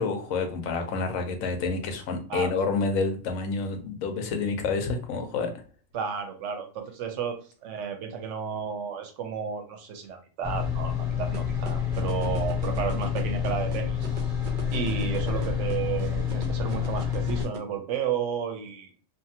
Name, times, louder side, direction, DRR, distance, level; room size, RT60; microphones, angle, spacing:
voice 1, 0.0-5.5, left 4 dB, 85° left, 5 dB, 1.0 m, -28 dB
voice 2, 2.3-2.6 5.9-14.1 14.7-18.9, right 7 dB, 70° right, 5 dB, 0.8 m, -32 dB
sound 1, 10.4-17.4, left 7 dB, ahead, 1.1 m, -28 dB
sound 2, 11.3-17.6, right 5 dB, 55° right, 0.5 m, -39 dB
2.5 x 2.5 x 2.7 m, 0.40 s
omnidirectional pair, 1.4 m